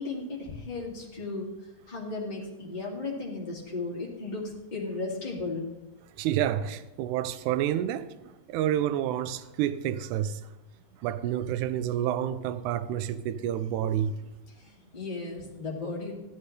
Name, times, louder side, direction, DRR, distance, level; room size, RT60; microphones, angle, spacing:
voice 1, 0.0-1.5 1.9-5.7 13.8-13.9 14.6-16.1, left 3 dB, 15° left, 1.6 m, -35 dB
voice 2, 6.2-10.4 11.0-14.1, right 11 dB, 80° right, 1.8 m, -29 dB
16.0 x 12.0 x 3.3 m
omnidirectional pair, 4.0 m